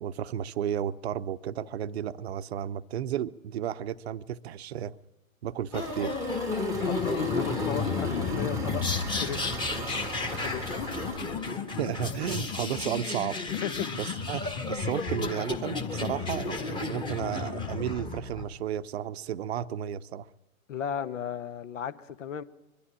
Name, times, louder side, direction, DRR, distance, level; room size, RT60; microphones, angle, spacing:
voice 1, 0.0-5.0 5.4-6.2 11.8-13.4 14.0-20.3, right 10 dB, 50° right, 0.8 m, -33 dB
sound 1, 5.7-18.4, left 4 dB, 10° left, 1.4 m, -32 dB
Engine, 5.7-11.2, right 5 dB, 10° right, 0.7 m, -40 dB
voice 2, 6.9-8.8 9.2-9.6 10.2-10.7 13.5-13.9 20.7-22.4, left 8 dB, 60° left, 1.2 m, -35 dB
22.5 x 11.5 x 10.0 m
hypercardioid pair, 125°, 42 cm